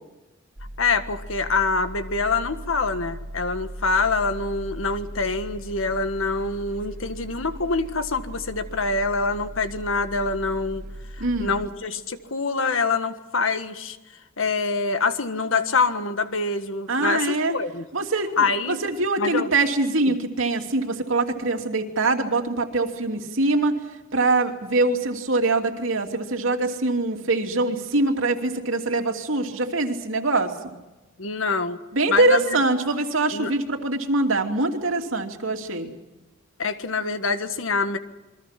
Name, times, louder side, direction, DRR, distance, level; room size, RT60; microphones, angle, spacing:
sound 1, 0.6-11.7, right 1 dB, 60° right, 2.3 m, -38 dB
voice 1, 0.8-10.8 11.4-14.0 14.4-17.9 18.4-18.8 19.2-19.5 20.1-20.2 31.2-31.8 32.1-32.6 33.3-33.5 36.6-38.0, left 4 dB, 80° left, 10 dB, 1.6 m, -25 dB
voice 2, 11.2-11.5 16.9-17.5 17.9-18.3 18.7-23.8 24.1-30.5 31.9-35.9, right 2 dB, 80° right, 3 dB, 2.8 m, -23 dB
28.0 x 23.5 x 5.9 m, 1.1 s
head